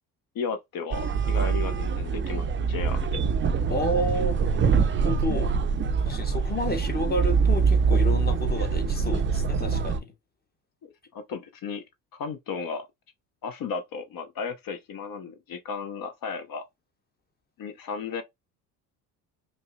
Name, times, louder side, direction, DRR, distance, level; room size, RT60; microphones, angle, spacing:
voice 1, 0.3-3.2 10.8-11.8 12.1-12.9 13.4-16.6 17.6-18.2, left 5 dB, 45° left, 0.8 m, -34 dB
sound 1, 0.9-10.0, right 5 dB, 25° right, 0.5 m, -24 dB
voice 2, 3.7-5.6 6.0-10.1, left 1 dB, 20° left, 1.0 m, -31 dB
5.3 x 2.1 x 2.6 m
hypercardioid pair, 60°, 48 cm